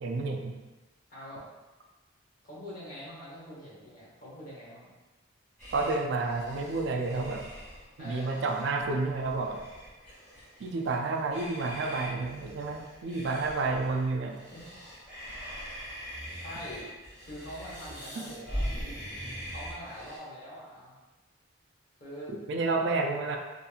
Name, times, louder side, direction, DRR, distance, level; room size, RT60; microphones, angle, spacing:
voice 1, 0.0-0.5 5.7-7.4 8.0-9.7 10.6-14.4 18.2-18.3 22.5-23.4, right 3 dB, 65° right, 3 dB, 0.3 m, -30 dB
voice 2, 1.1-1.5 2.4-4.9 8.0-8.3 14.2-14.8 16.3-16.9 17.3-18.6 19.4-20.9 22.0-22.3 22.8-22.9, equal, 45° left, -8 dB, 1.0 m, -44 dB
sound 1, 5.6-20.2, equal, 5° right, 1.1 m, -42 dB
2.7 x 2.6 x 2.3 m, 1.1 s
head